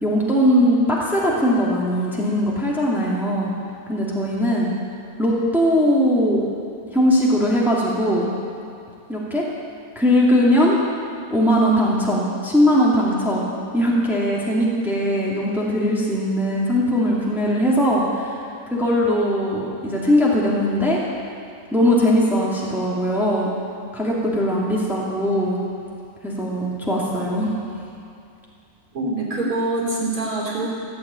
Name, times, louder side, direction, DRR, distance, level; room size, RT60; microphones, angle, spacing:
voice 1, 0.0-3.5 3.9-4.7 5.2-6.4 6.9-8.3 9.1-9.5 10.0-10.8 11.3-18.4 18.7-21.0 21.7-23.5 23.9-25.6 26.2-27.5, equal, ahead, -5 dB, 2.3 m, -20 dB
voice 2, 28.9-30.7, right 2 dB, 65° right, -5 dB, 3.8 m, -24 dB
15.5 x 8.5 x 8.8 m, 2.5 s
omnidirectional pair, 1.6 m